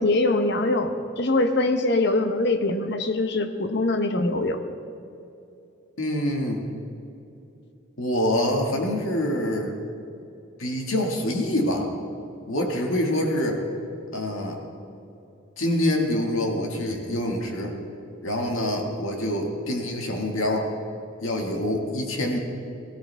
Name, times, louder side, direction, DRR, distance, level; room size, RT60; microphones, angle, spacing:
voice 1, 0.0-4.6, left 2 dB, 55° left, 7 dB, 0.9 m, -23 dB
voice 2, 6.0-6.6 8.0-9.7 10.6-11.9 12.5-13.6 14.1-14.6 15.6-17.7 18.2-20.7 21.2-22.4, left 1 dB, 90° left, 1 dB, 2.0 m, -25 dB
17.5 x 16.0 x 3.5 m, 2.8 s
head